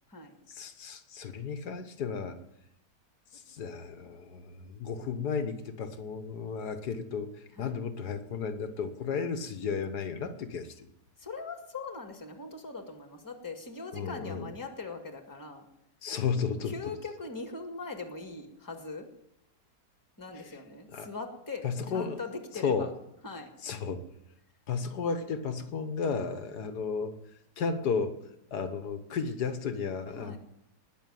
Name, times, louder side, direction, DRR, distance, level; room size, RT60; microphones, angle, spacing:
voice 1, 0.5-2.4 3.3-7.3 7.6-10.9 13.9-14.5 16.0-16.8 20.9-21.1 21.6-22.2 22.6-22.9 23.6-24.0 24.7-27.1 27.6-28.2 28.5-30.4, left 5 dB, 80° left, 9 dB, 1.8 m, -33 dB
voice 2, 11.2-15.7 16.7-19.1 20.2-22.9 23.2-23.5 30.1-30.4, left 4 dB, 10° left, 4 dB, 1.9 m, -41 dB
20.0 x 6.6 x 9.3 m, 0.81 s
omnidirectional pair, 1.7 m